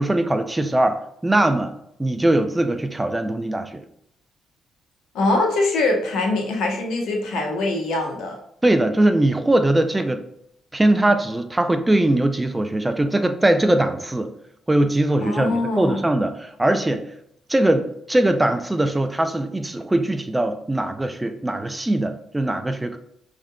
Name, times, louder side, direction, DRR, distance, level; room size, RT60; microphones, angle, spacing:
voice 1, 0.0-1.7 2.0-3.8 8.6-10.2 10.7-14.3 14.7-17.0 17.5-23.0, right 1 dB, 15° right, 8 dB, 0.4 m, -21 dB
voice 2, 5.1-8.4 15.2-16.0, left 2 dB, 80° left, 2 dB, 0.9 m, -23 dB
6.2 x 3.6 x 2.2 m, 0.73 s
cardioid pair, 90°, 0 cm